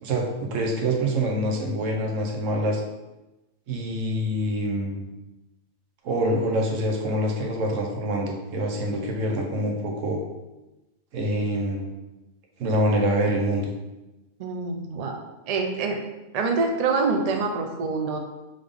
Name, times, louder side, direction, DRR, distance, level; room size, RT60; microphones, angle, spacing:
voice 1, 0.0-2.8 3.7-5.1 6.0-10.2 11.1-11.9 12.6-13.7, right 1 dB, 85° right, 1 dB, 1.1 m, -25 dB
voice 2, 14.4-16.0 16.3-18.2, right 4 dB, 55° right, 3 dB, 0.4 m, -26 dB
3.7 x 3.6 x 3.4 m, 1.0 s
omnidirectional pair, 1.3 m